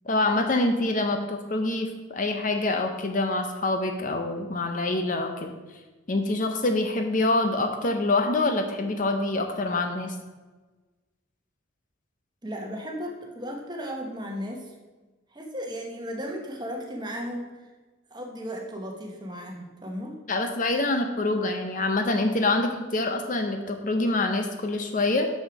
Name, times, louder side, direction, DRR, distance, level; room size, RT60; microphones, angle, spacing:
voice 1, 0.1-5.5 6.1-10.2 20.3-25.3, left 2 dB, 40° left, 5 dB, 0.6 m, -26 dB
voice 2, 12.4-14.7 15.3-17.6 18.1-20.1, equal, 20° right, 1 dB, 1.1 m, -35 dB
6.4 x 6.2 x 5.1 m, 1.2 s
head